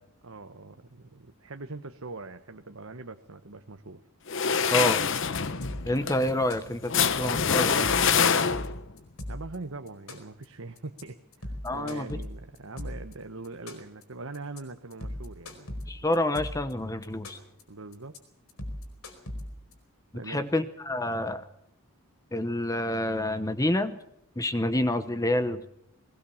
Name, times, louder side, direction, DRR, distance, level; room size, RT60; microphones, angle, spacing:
voice 1, 0.2-4.0 9.3-15.8 17.7-18.1 20.1-20.4, right 3 dB, 70° right, 7 dB, 1.1 m, -42 dB
sound 1, 4.3-8.9, left 6 dB, 60° left, 1.0 m, -25 dB
sound 2, 5.6-6.0 6.3-6.9 7.2-7.4 7.7-9.6 9.9-10.4 10.8-11.0 11.3-13.1 13.4-14.0 14.3-14.6 14.9-16.7 17.0-17.6 17.9-18.2 18.5-19.7, left 1 dB, 80° left, 4.8 m, -38 dB
voice 2, 5.9-7.9 11.6-12.1 15.9-17.4 20.3-21.4 22.3-24.0 24.4-25.7, left 1 dB, 15° left, 11 dB, 0.9 m, -28 dB
20.5 x 20.0 x 7.2 m, 0.79 s
head